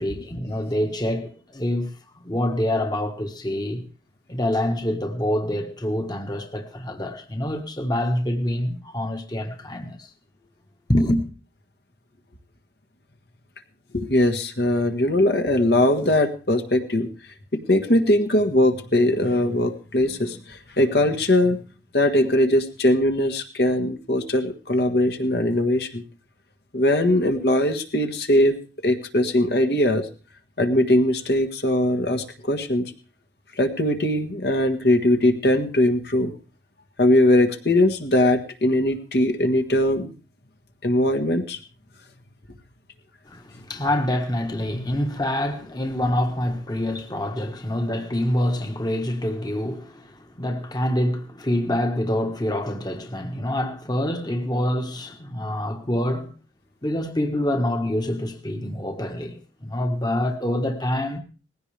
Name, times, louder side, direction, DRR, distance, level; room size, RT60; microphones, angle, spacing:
voice 1, 0.0-1.9 2.2-3.8 4.3-10.1 10.9-11.2 43.3-56.3 56.8-61.2, left 1 dB, 25° left, 1.4 m, -26 dB
voice 2, 13.9-17.1 17.5-21.6 21.9-26.0 26.7-30.1 30.6-32.9 33.6-36.3 37.0-40.1 40.8-41.6 44.7-44.9, left 1 dB, 60° left, 1.6 m, -21 dB
19.5 x 16.0 x 3.4 m
head